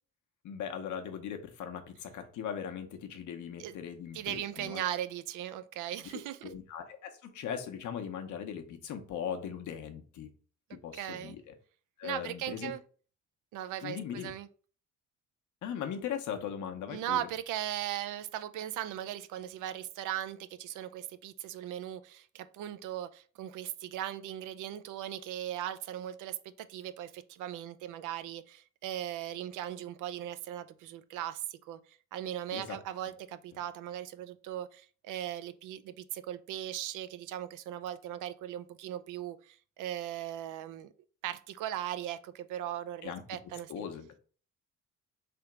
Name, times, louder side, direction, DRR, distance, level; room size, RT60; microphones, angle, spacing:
voice 1, 0.4-4.8 6.0-10.3 10.7-11.5 12.0-12.7 13.8-14.3 15.6-17.3 32.5-32.8 43.0-43.2 43.7-44.1, left 8 dB, 75° left, 6 dB, 0.8 m, -39 dB
voice 2, 4.1-6.5 10.9-11.3 12.0-12.8 13.5-14.5 16.9-40.9 41.2-43.9, right 12 dB, 85° right, 12 dB, 0.5 m, -38 dB
3.4 x 2.9 x 4.6 m, 0.42 s
cardioid pair, 90°, 30 cm